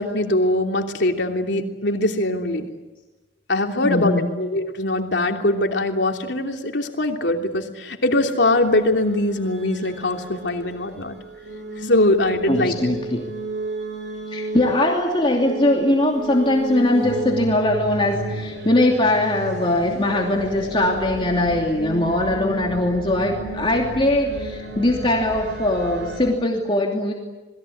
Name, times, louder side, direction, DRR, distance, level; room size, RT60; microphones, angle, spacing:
voice 1, 0.0-2.7 3.5-11.1 11.8-12.7, left 1 dB, 75° left, 3 dB, 3.1 m, -22 dB
voice 2, 3.8-4.4 12.5-13.2 14.3-27.1, left 1 dB, 30° left, 0 dB, 2.9 m, -21 dB
sound 1, 8.4-26.3, right 2 dB, 70° right, 6.1 m, -32 dB
28.0 x 21.5 x 8.7 m, 1.1 s
head